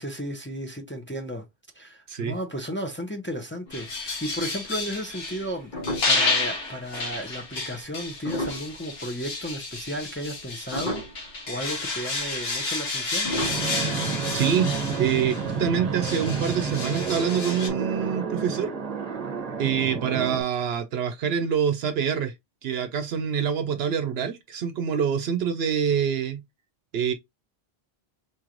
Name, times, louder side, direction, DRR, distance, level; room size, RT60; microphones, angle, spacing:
voice 1, 0.0-1.5 1.7-5.7 6.1-13.3, equal, 15° left, 0.6 m, -34 dB
sound 1, 3.7-5.5 5.8-15.6 16.0-17.7, left 3 dB, 75° left, 1.4 m, -31 dB
sound 2, 3.7-4.4 4.8-4.9 5.4-6.4 6.9-7.0 8.0-9.5 9.9-10.4 10.7-11.4 11.8-11.9 12.1-12.3 13.1-14.7 15.0-15.1, left 1 dB, 50° left, 1.6 m, -34 dB
Fixed-wing aircraft airplane, 13.3-20.4, right 5 dB, 40° right, 0.9 m, -30 dB
voice 2, 14.3-14.7 15.0-18.7 19.6-22.3 22.6-26.4 26.9-27.1, right 7 dB, 75° right, 0.8 m, -25 dB
4.2 x 3.1 x 2.4 m
omnidirectional pair, 1.1 m